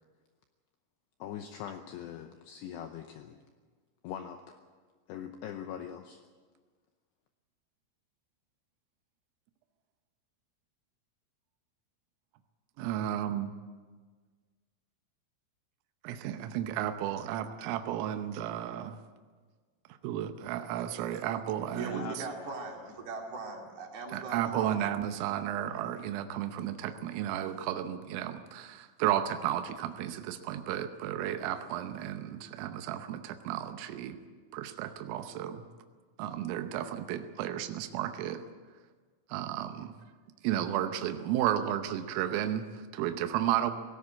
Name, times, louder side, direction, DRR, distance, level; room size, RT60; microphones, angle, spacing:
voice 1, 1.2-3.4 4.0-4.6 5.1-6.2 17.1-17.2 21.7-23.1, left 9 dB, 80° left, 6 dB, 2.6 m, -43 dB
voice 2, 12.8-13.5 16.0-19.0 20.0-22.2 24.1-34.2 34.5-35.6 36.2-38.4 39.3-39.9 40.4-43.7, right 11 dB, 85° right, 7 dB, 3.6 m, -33 dB
voice 3, 21.7-24.8, right 4 dB, 55° right, 1 dB, 4.1 m, -40 dB
18.0 x 18.0 x 8.5 m, 1.5 s
omnidirectional pair, 5.8 m